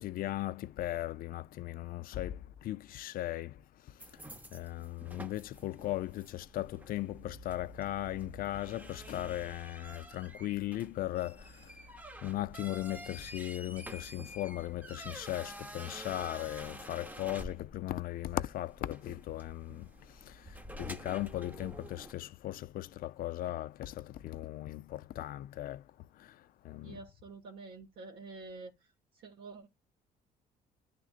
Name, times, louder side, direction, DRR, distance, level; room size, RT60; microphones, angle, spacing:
voice 1, 0.0-4.2 4.5-11.8 12.2-25.8 26.1-27.0, left 15 dB, 60° left, 0.4 m, -38 dB
sound 1, 4.0-22.1, right 1 dB, 10° right, 0.8 m, -49 dB
voice 2, 26.8-28.7 29.2-29.7, right 3 dB, 75° right, 1.5 m, -47 dB
11.0 x 3.7 x 2.4 m
cardioid pair, 110°, 17 cm